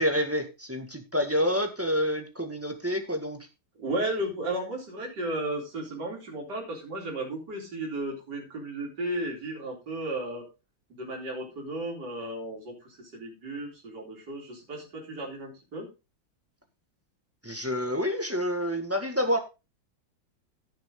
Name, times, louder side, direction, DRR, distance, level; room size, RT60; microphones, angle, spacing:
voice 1, 0.0-3.4 17.4-19.4, equal, 5° right, 5 dB, 1.6 m, -28 dB
voice 2, 3.8-10.4 10.9-15.9, right 1 dB, 55° right, -2 dB, 4.4 m, -34 dB
15.5 x 6.8 x 3.8 m, 0.28 s
omnidirectional pair, 2.2 m